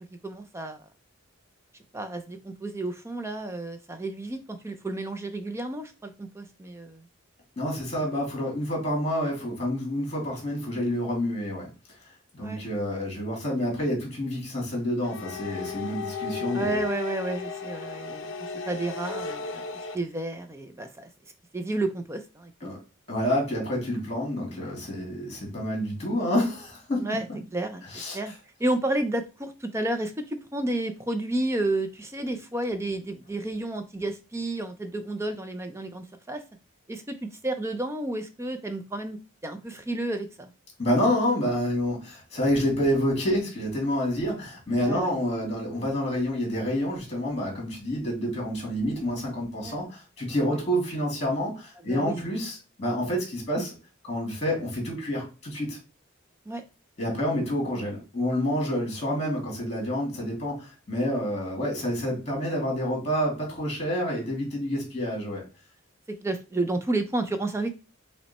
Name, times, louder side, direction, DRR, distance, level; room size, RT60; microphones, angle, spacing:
voice 1, 0.2-0.8 1.9-7.0 12.4-12.6 16.5-18.3 18.7-19.6 19.9-21.1 21.5-22.5 27.0-27.3 27.5-27.8 28.1-28.3 28.6-36.4 36.9-37.0 37.4-39.2 39.4-40.5 44.8-45.1 49.6-49.7 51.9-52.2 56.5-56.6 66.2-67.7, right 2 dB, 15° right, 8 dB, 0.4 m, -31 dB
voice 2, 7.6-11.7 12.3-16.8 22.6-22.8 23.1-27.2 27.9-28.3 40.8-53.7 54.0-55.8 57.0-65.4, equal, 30° left, -1 dB, 2.1 m, -28 dB
sound 1, 15.0-20.0, left 5 dB, 60° left, 0.5 m, -34 dB
5.6 x 2.1 x 4.1 m, 0.32 s
head